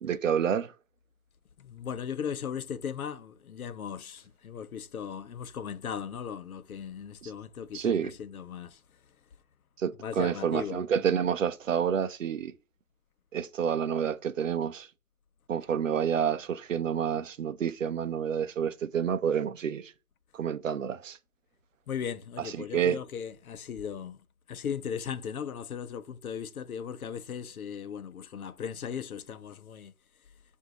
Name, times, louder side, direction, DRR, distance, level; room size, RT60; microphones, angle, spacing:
voice 1, 0.0-0.7 7.2-7.3 7.7-8.1 9.8-12.5 13.3-14.9 15.5-19.9 20.3-21.2 22.6-23.0, right 8 dB, 60° right, 0.5 m, -29 dB
voice 2, 1.6-9.2 10.0-10.8 21.9-29.9, left 7 dB, 75° left, 0.8 m, -37 dB
8.0 x 2.7 x 6.0 m
hypercardioid pair, 175°, 43 cm